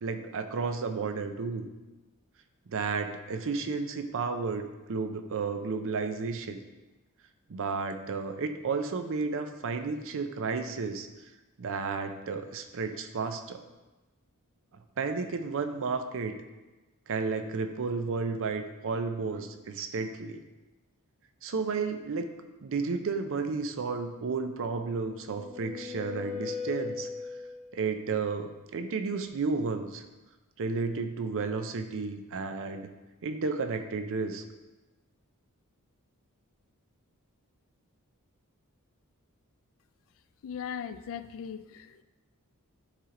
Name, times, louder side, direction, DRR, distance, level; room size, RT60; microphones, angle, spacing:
voice 1, 0.0-1.7 2.7-6.6 7.5-11.1 11.6-13.6 15.0-16.4 17.1-20.4 21.4-22.3 22.6-27.1 27.7-30.0 30.6-32.9 33.2-34.4, right 4 dB, 60° right, 8 dB, 0.5 m, -32 dB
sound 1, 24.8-27.8, left 5 dB, 35° left, 1.0 m, -39 dB
voice 2, 40.4-42.0, left 7 dB, 65° left, 12 dB, 0.3 m, -38 dB
9.6 x 3.3 x 3.7 m, 1.1 s
head